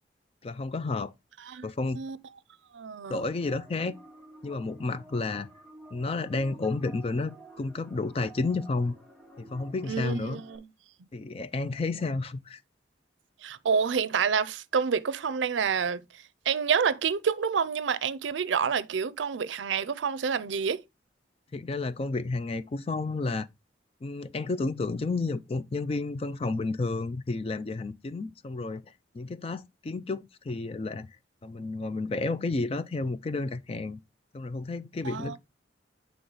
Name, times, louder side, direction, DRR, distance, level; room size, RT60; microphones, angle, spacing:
voice 1, 0.4-1.1 1.6-2.0 3.1-3.9 4.4-5.5 5.9-8.9 9.4-10.4 11.1-12.6 21.5-23.5 24.0-28.8 29.1-31.1 31.4-34.0 34.3-35.4, left 3 dB, 30° left, 0.4 m, -31 dB
voice 2, 2.7-3.2 9.9-10.7 13.4-16.0 16.5-20.8 35.0-35.4, right 6 dB, 85° right, 0.5 m, -28 dB
sound 1, 3.2-10.6, right 2 dB, 5° left, 1.0 m, -51 dB
7.7 x 3.4 x 3.9 m
head